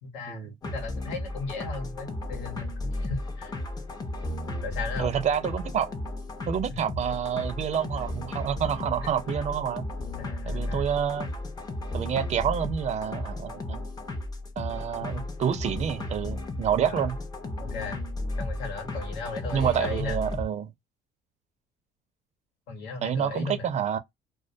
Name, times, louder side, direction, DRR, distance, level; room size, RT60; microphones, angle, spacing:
voice 1, 0.0-3.5 4.6-5.2 6.7-6.9 10.2-10.9 16.8-17.1 17.6-18.0 18.4-20.2 22.7-23.7, left 4 dB, 90° left, 1.0 m, -36 dB
sound 1, 0.6-20.5, left 1 dB, 25° left, 0.5 m, -34 dB
voice 2, 5.0-5.9 6.5-9.9 10.5-11.3 11.9-13.8 14.6-17.2 19.5-20.7 23.0-24.0, right 8 dB, 40° right, 0.4 m, -28 dB
2.2 x 2.1 x 2.5 m
cardioid pair, 110°, 17 cm